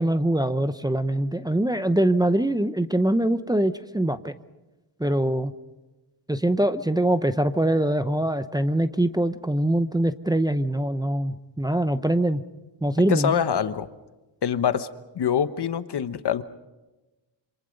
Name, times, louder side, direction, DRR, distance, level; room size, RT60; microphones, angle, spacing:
voice 1, 0.0-4.3 5.0-5.5 6.3-12.4 12.8-13.3, right 1 dB, 10° right, 10 dB, 0.8 m, -23 dB
voice 2, 13.1-13.9 14.4-14.9 15.1-16.4, left 8 dB, 60° left, 12 dB, 1.2 m, -24 dB
27.0 x 26.5 x 5.3 m, 1.1 s
cardioid pair, 100°, 46 cm